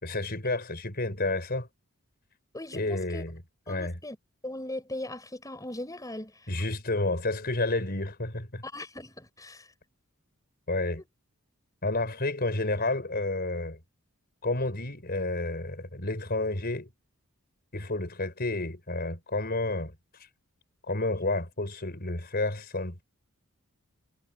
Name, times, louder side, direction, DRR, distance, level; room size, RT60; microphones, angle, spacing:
voice 1, 0.0-1.7 2.7-3.4 3.7-3.9 6.5-8.6 10.7-11.0 11.8-13.8 14.4-16.9 17.7-19.9 20.9-23.0, left 2 dB, 45° left, 4.9 m, -30 dB
voice 2, 2.5-3.2 3.7-4.2 4.4-6.3 8.6-9.7, left 1 dB, 15° left, 6.3 m, -39 dB
head